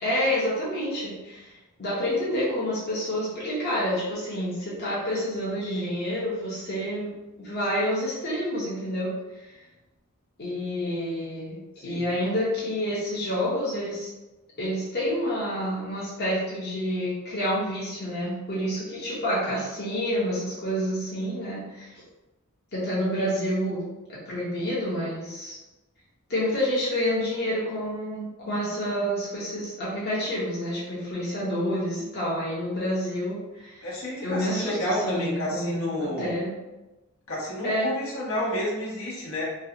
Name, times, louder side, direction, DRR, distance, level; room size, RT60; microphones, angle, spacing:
voice 1, 0.0-7.1 7.4-9.1 10.4-11.6 11.8-14.1 14.6-21.9 22.7-23.8 24.1-25.6 26.3-33.9 34.2-35.9 36.2-36.6 37.6-37.9, equal, 50° left, -8 dB, 0.9 m, -28 dB
voice 2, 11.9-12.2 33.8-36.4 37.3-39.4, left 1 dB, 80° left, -6 dB, 1.1 m, -30 dB
3.1 x 2.4 x 2.9 m, 1.1 s
head